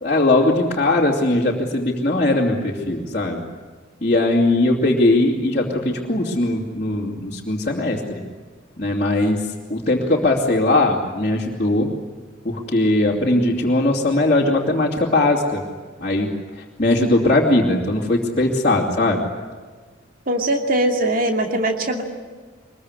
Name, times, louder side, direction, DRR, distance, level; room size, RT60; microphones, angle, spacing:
voice 1, 0.0-3.4 4.0-8.2 8.8-11.9 12.4-15.6 16.0-16.3 16.8-19.2, left 2 dB, 35° left, -6 dB, 2.9 m, -19 dB
voice 2, 20.3-22.0, right 1 dB, 45° right, 4 dB, 2.6 m, -21 dB
24.0 x 22.0 x 9.8 m, 1.5 s
head